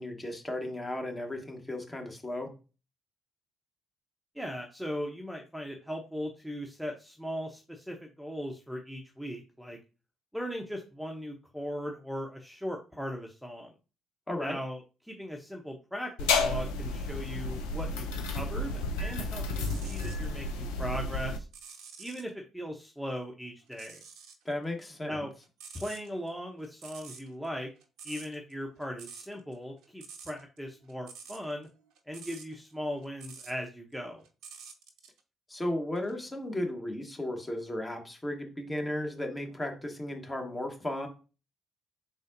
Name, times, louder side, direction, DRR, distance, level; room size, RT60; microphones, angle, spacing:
voice 1, 0.0-2.5 14.3-14.6 24.4-25.3 35.5-41.1, left 1 dB, 20° left, 3 dB, 1.3 m, -35 dB
voice 2, 4.3-9.8 10.3-13.7 14.4-21.5 22.0-24.0 25.1-25.3 25.7-27.7 28.0-31.7 32.1-34.2, equal, ahead, 1 dB, 0.8 m, -38 dB
sound 1, 16.2-21.4, left 3 dB, 75° left, 0.5 m, -32 dB
sound 2, 19.5-20.3 20.7-22.3 23.7-24.5 24.7-33.7 33.9-35.2 36.0-36.1, right 5 dB, 65° right, 0.6 m, -49 dB
4.9 x 3.9 x 2.6 m, 0.32 s
figure-of-eight pair, 45°, 0 cm